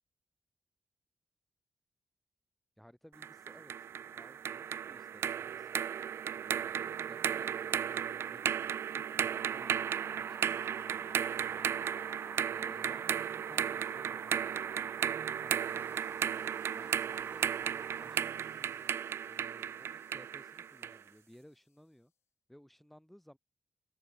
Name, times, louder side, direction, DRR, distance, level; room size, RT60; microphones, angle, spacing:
voice 1, 2.8-3.7 4.1-5.7 6.4-7.5 7.9-11.9 12.5-16.3 16.7-18.8 19.2-22.1 22.5-23.4, equal, 5° left, 6.6 m, -58 dB
sound 1, 3.2-21.0, right 8 dB, 75° right, 0.4 m, -35 dB
sound 2, 8.4-21.8, left 8 dB, 85° left, 1.8 m, -64 dB
sound 3, 9.3-18.3, right 4 dB, 40° right, 1.1 m, -50 dB
open air
cardioid pair, 95°, 4 cm